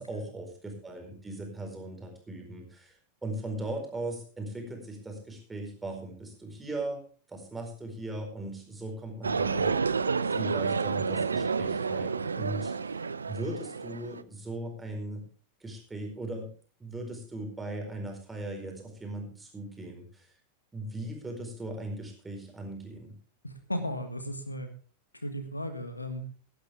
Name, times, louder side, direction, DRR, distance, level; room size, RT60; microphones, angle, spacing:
voice 1, 0.0-2.9 3.2-7.0 7.3-12.7 13.3-15.3 15.6-16.5 16.8-20.3 20.7-23.1, right 1 dB, 10° right, 2 dB, 4.5 m, -38 dB
sound 1, 9.2-14.2, right 5 dB, 75° right, 0.6 m, -30 dB
voice 2, 23.4-24.7 25.2-26.2, equal, 85° left, 8 dB, 1.6 m, -35 dB
16.5 x 11.5 x 3.5 m, 0.38 s
figure-of-eight pair, 90°, 0 cm